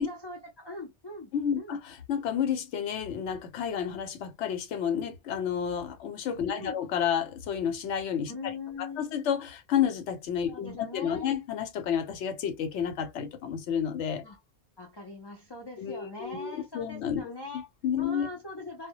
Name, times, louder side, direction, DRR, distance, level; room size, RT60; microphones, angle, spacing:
voice 1, 0.0-1.3 1.6-1.8 6.4-6.8 8.3-9.2 10.5-11.3 14.2-14.4 14.8-17.7 18.0-18.9, left 3 dB, 35° left, 0.4 m, -41 dB
voice 2, 1.3-8.5 8.8-14.2 15.8-18.3, left 8 dB, 90° left, 0.9 m, -31 dB
2.1 x 2.1 x 2.7 m
omnidirectional pair, 1.1 m